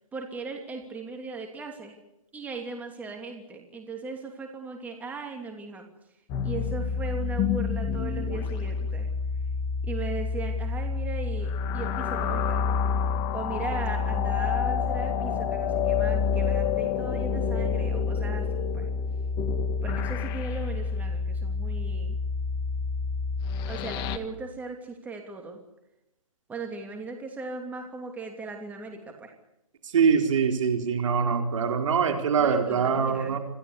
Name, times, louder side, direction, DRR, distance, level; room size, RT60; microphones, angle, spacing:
voice 1, 0.1-2.0 2.3-5.9 6.4-9.1 9.8-12.6 13.3-18.9 19.8-22.2 23.7-25.6 26.5-29.3 32.4-33.4, right 3 dB, 10° right, 3 dB, 2.9 m, -38 dB
sound 1, 6.3-24.2, left 5 dB, 25° left, 1.7 m, -28 dB
voice 2, 29.9-33.4, right 6 dB, 60° right, 5 dB, 4.4 m, -23 dB
26.5 x 17.0 x 8.4 m, 0.89 s
hypercardioid pair, 145°, 19 cm